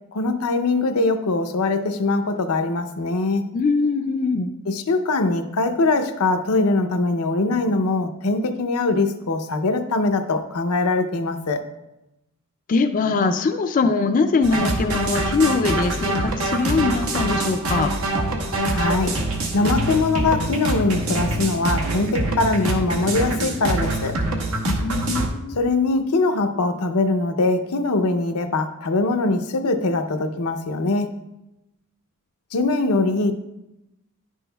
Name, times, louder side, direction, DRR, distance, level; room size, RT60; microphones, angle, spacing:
voice 1, 0.1-3.5 4.7-11.6 18.7-19.2 19.5-24.2 25.5-31.1 32.5-33.3, left 3 dB, 85° left, 7 dB, 0.6 m, -22 dB
voice 2, 3.5-4.5 12.7-17.9 24.7-25.6, left 4 dB, 40° left, 6 dB, 0.3 m, -22 dB
sound 1, 14.4-25.3, right 1 dB, 75° right, 1.0 m, -24 dB
10.0 x 6.2 x 2.2 m, 0.91 s
head